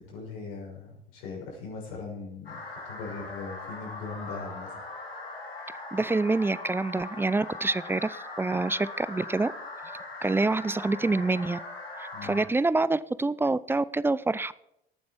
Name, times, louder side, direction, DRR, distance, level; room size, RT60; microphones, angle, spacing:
voice 1, 0.0-4.8 12.1-12.4, left 4 dB, 60° left, -1 dB, 6.2 m, -40 dB
sound 1, 2.5-12.4, left 2 dB, 80° left, 3.9 m, -40 dB
voice 2, 5.9-9.5 10.2-11.6 12.0-14.5, right 3 dB, 10° right, 18 dB, 0.5 m, -26 dB
18.0 x 9.4 x 4.6 m, 0.78 s
figure-of-eight pair, 65°, 30 cm